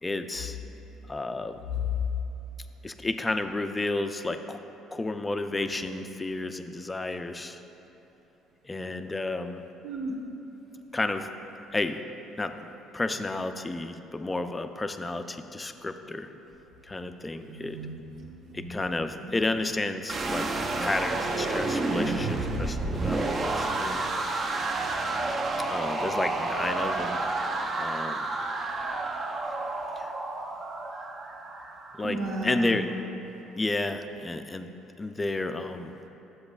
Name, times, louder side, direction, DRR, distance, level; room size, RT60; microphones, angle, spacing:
voice 1, 0.0-0.6 1.1-1.6 2.8-4.6 4.9-7.6 8.6-9.6 10.9-11.3 11.7-12.0 12.4-16.3 16.8-17.8 18.5-20.5 20.8-24.1 25.7-27.2 27.8-28.3 30.0-30.1 32.0-32.9 33.6-34.7 35.0-36.1, left 2 dB, 15° left, 8 dB, 0.4 m, -31 dB
voice 2, 9.8-10.1 15.7-15.8 17.4-18.7 19.1-19.5 32.0-32.8, right 1 dB, 70° right, -2 dB, 1.3 m, -35 dB
sound 1, 20.1-32.1, right 2 dB, 40° right, 0.6 m, -30 dB
11.5 x 7.7 x 2.4 m, 3.0 s
cardioid pair, 110°, 0 cm